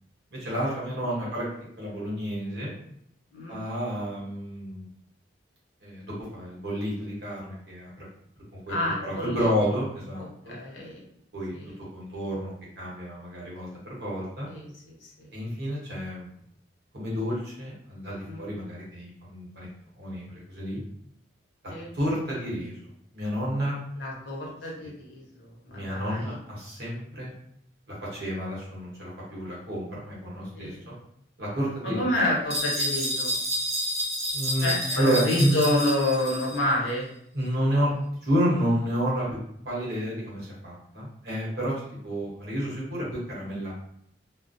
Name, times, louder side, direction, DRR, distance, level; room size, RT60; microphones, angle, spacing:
voice 1, 0.3-1.5 1.8-2.7 3.5-4.9 5.8-8.1 8.7-8.8 9.0-10.6 11.3-11.5 11.9-14.5 15.3-16.3 16.9-19.7 20.0-20.8 21.9-22.8 23.1-23.8 24.8-24.9 25.7-27.3 27.9-30.9 31.4-32.1 34.3-35.6 37.3-39.4 39.6-43.7, equal, 60° right, -5 dB, 1.0 m, -30 dB
voice 2, 8.7-9.5 10.2-11.0 11.5-11.7 14.5-15.3 18.2-18.5 21.7-21.9 24.0-26.4 30.5-30.8 31.8-33.3 34.6-37.1, left 1 dB, 75° left, -4 dB, 0.8 m, -29 dB
sound 1, 32.5-36.6, equal, 35° right, 0.9 m, -30 dB
2.3 x 2.0 x 2.6 m, 0.71 s
head